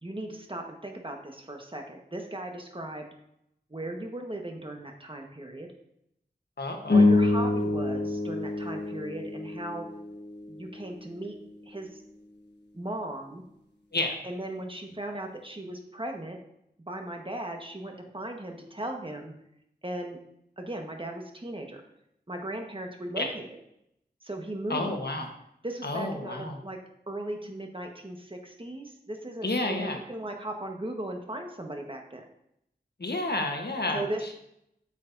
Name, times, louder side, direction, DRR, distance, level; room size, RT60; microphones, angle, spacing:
voice 1, 0.0-3.1 3.7-5.7 6.9-9.9 10.5-11.4 11.6-12.0 12.7-13.4 14.2-16.4 16.9-19.3 19.8-20.2 20.6-21.8 22.3-23.6 24.2-25.0 25.6-26.8 27.1-32.3 33.9-34.3, right 1 dB, 30° right, 2 dB, 1.4 m, -37 dB
voice 2, 6.6-7.1 13.9-14.2 23.2-23.3 24.7-25.3 25.8-26.6 29.4-30.0 33.0-34.0, left 2 dB, 70° left, 3 dB, 1.2 m, -30 dB
sound 1, 6.8-11.4, left 2 dB, 90° left, 1.4 m, -26 dB
8.3 x 8.2 x 2.7 m, 0.77 s
wide cardioid pair, 50°, 18 cm